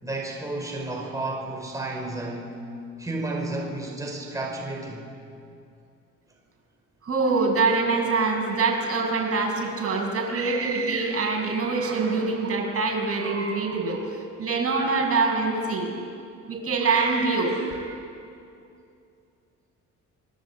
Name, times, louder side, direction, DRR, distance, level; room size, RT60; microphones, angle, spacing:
voice 1, 0.0-2.6 3.0-5.1, right 2 dB, 10° right, 0 dB, 5.1 m, -32 dB
voice 2, 7.0-16.0 16.5-18.0, right 4 dB, 50° right, 1 dB, 6.6 m, -25 dB
27.5 x 23.0 x 8.8 m, 2.5 s
cardioid pair, 90°, 30 cm